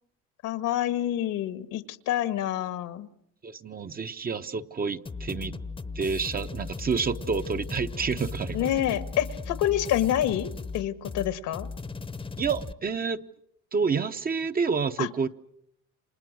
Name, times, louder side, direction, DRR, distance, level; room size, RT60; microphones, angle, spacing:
voice 1, 0.4-3.1 8.5-11.7 15.0-15.3, left 12 dB, 70° left, 11 dB, 1.7 m, -27 dB
voice 2, 3.4-5.6 5.9-8.7 12.4-13.2 13.7-15.3, right 5 dB, 25° right, 8 dB, 0.9 m, -29 dB
sound 1, 5.1-12.7, left 4 dB, 15° left, 1.0 m, -37 dB
29.5 x 26.5 x 6.4 m, 0.75 s
cardioid pair, 115°, 32 cm